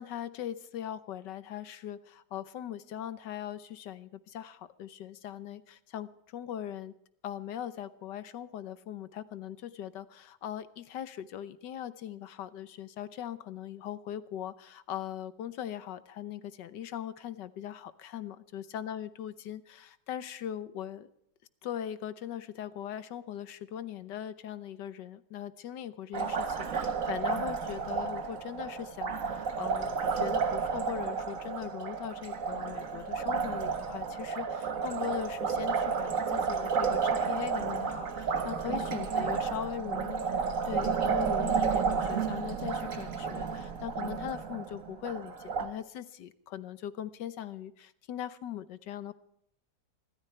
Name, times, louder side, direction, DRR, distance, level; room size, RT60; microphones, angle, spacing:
voice 1, 0.0-6.9 7.2-21.1 21.6-40.2 40.7-49.1, left 10 dB, 80° left, 14 dB, 1.6 m, -40 dB
Liquid, 26.1-45.7, right 5 dB, 50° right, 1.7 m, -31 dB
26.5 x 13.5 x 3.3 m, 0.72 s
omnidirectional pair, 1.9 m